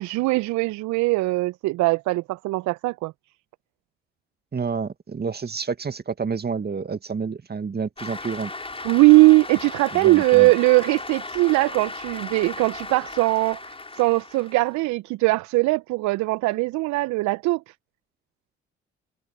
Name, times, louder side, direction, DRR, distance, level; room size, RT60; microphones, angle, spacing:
voice 1, 0.0-3.1 8.8-17.6, right 22 dB, 65° right, 1.1 m, -20 dB
voice 2, 4.5-8.5 9.9-10.5, right 5 dB, 30° right, 2.2 m, -29 dB
Cheering / Applause, 8.0-14.8, left 2 dB, 20° left, 5.4 m, -36 dB
hypercardioid pair, 50°, 31 cm